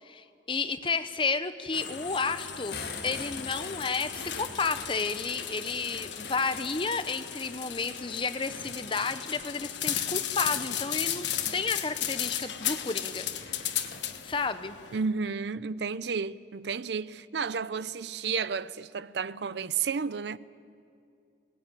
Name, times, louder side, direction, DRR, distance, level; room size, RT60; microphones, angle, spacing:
voice 1, 0.0-13.8 14.2-14.8, left 4 dB, 30° left, 0.7 m, -32 dB
sound 1, 1.7-15.0, left 10 dB, 85° left, 1.3 m, -35 dB
sound 2, 2.7-7.0 7.5-9.6 10.4-10.8 11.3-11.6 12.0-12.1 12.4-12.5 12.9-14.9, left 4 dB, 55° left, 2.2 m, -45 dB
voice 2, 14.9-20.4, right 5 dB, 75° right, 0.5 m, -32 dB
20.0 x 19.0 x 9.2 m
head